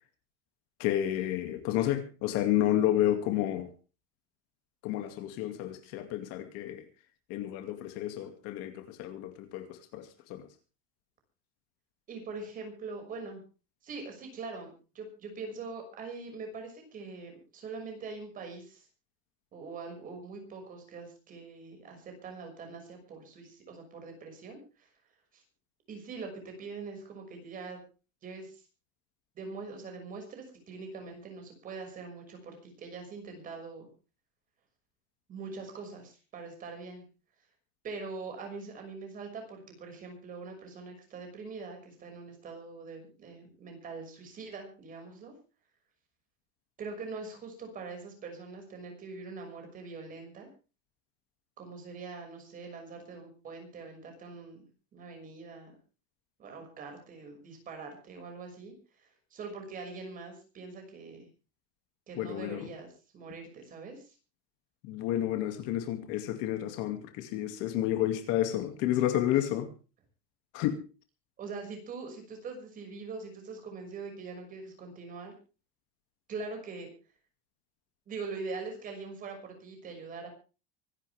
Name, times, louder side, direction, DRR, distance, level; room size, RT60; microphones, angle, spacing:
voice 1, 0.8-3.7 4.8-6.8 7.3-10.5 62.2-62.7 64.8-69.7 70.5-70.8, left 12 dB, 45° left, 2.4 m, -30 dB
voice 2, 12.1-13.4 13.8-18.9 19.5-24.9 25.3-25.4 25.9-27.8 28.2-28.6 29.4-33.9 35.3-37.0 37.8-45.3 46.8-50.5 51.6-54.6 54.9-55.7 56.4-58.7 59.0-61.3 62.1-64.2 71.4-75.4 76.3-76.9 78.1-80.3, right 4 dB, 25° right, 6.1 m, -43 dB
25.0 x 12.0 x 3.5 m
cardioid pair, 180°, 32 cm